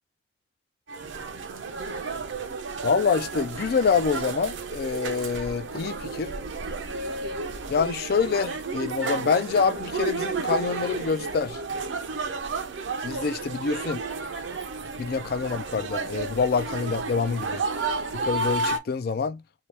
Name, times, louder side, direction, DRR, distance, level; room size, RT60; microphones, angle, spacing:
sound 1, 0.9-18.8, right 4 dB, 90° right, 0.6 m, -32 dB
voice 1, 2.8-6.3 7.7-11.6 13.0-14.0 15.0-17.6 18.1-19.4, left 5 dB, 55° left, 0.3 m, -26 dB
2.7 x 2.2 x 3.2 m
head